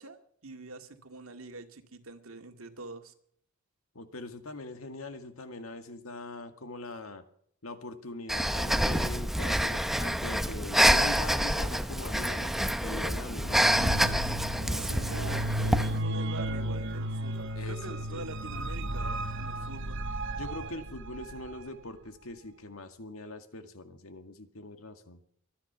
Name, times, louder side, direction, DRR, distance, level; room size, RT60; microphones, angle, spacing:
voice 1, 0.0-3.1 14.7-20.1, right 3 dB, 90° right, 6 dB, 2.1 m, -45 dB
voice 2, 4.0-7.2 7.6-14.3 14.9-15.5 17.5-18.2 20.4-25.2, left 2 dB, 85° left, 7 dB, 2.0 m, -42 dB
Breathing, 8.3-16.0, equal, ahead, 0.7 m, -27 dB
sound 1, 13.4-21.7, right 1 dB, 60° right, 1.4 m, -34 dB
24.5 x 9.9 x 5.8 m, 0.65 s
head